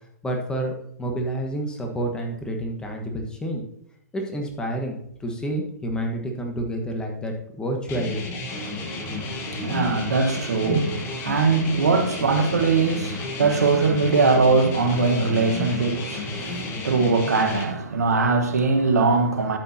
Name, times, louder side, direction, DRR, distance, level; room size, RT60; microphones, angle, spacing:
voice 1, 0.2-3.6 4.1-8.4, right 1 dB, 10° left, 1.4 m, -29 dB
sound 1, 7.9-17.6, left 3 dB, 25° left, 1.4 m, -32 dB
voice 2, 8.5-19.6, right 4 dB, 70° right, 1.4 m, -22 dB
12.0 x 8.1 x 2.9 m
figure-of-eight pair, 120°, 9 cm